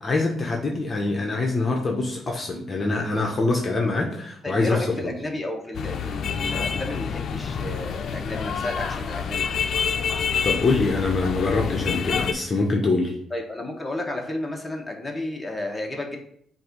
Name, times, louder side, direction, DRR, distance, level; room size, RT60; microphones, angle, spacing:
voice 1, 0.0-4.8 5.0-5.1 10.4-13.1, left 3 dB, 35° left, 0 dB, 1.0 m, -24 dB
voice 2, 4.4-9.4 13.3-16.2, left 2 dB, 10° left, 0 dB, 1.4 m, -32 dB
sound 1, 5.7-12.3, left 6 dB, 60° left, 0.6 m, -27 dB
7.6 x 2.7 x 5.2 m, 0.67 s
cardioid pair, 90°, 0 cm